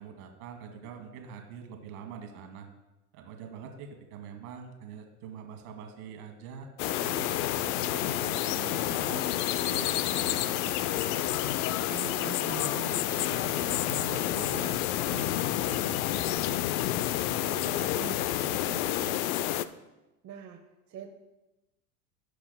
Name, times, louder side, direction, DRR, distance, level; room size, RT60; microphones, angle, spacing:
voice 1, 0.0-2.7 3.1-6.7 7.0-11.3 11.9-16.6 16.9-19.4, right 6 dB, 70° right, 4 dB, 1.5 m, -44 dB
sound 1, 6.8-19.6, left 13 dB, 65° left, 0.5 m, -29 dB
voice 2, 12.1-12.7 20.2-21.1, right 8 dB, 35° right, 1 dB, 1.0 m, -46 dB
15.5 x 5.8 x 2.2 m, 1.0 s
hypercardioid pair, 90°, 46 cm